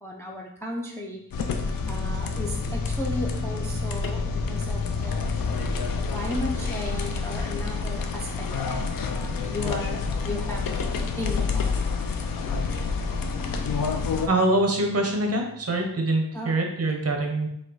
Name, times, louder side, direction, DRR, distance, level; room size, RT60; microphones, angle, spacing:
voice 1, 0.0-1.2 1.9-5.2 6.1-11.7 16.3-16.5, left 1 dB, 5° left, -1 dB, 0.4 m, -35 dB
sound 1, 1.3-14.3, left 5 dB, 65° left, 0.5 m, -28 dB
sound 2, 1.4-16.0, left 1 dB, 90° left, 1.0 m, -39 dB
voice 2, 14.3-17.5, right 2 dB, 40° right, 2 dB, 0.8 m, -24 dB
5.1 x 2.3 x 3.8 m, 0.75 s
wide cardioid pair, 150°, 38 cm